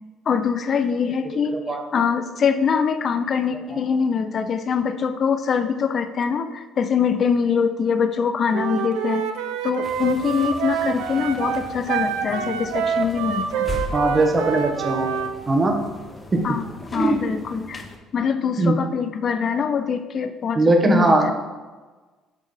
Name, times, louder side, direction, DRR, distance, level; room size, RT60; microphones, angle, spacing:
voice 1, 0.3-1.6 1.9-9.2 9.6-13.7 16.4-16.6 16.9-17.9 18.1-21.3, left 6 dB, 40° left, 10 dB, 0.4 m, -23 dB
voice 2, 1.5-1.8 3.7-3.8 13.9-15.1 15.5-15.8 16.3-16.6 17.0-17.3 18.6-18.8 20.6-21.3, right 2 dB, 20° right, 3 dB, 1.0 m, -20 dB
Wind instrument woodwind instrument, 8.5-15.3, right 8 dB, 85° right, 0.5 m, -27 dB
sound 1, 9.8-18.0, left 2 dB, 20° left, 0.8 m, -38 dB
6.3 x 4.0 x 5.0 m, 1.3 s
cardioid pair, 115°, 0 cm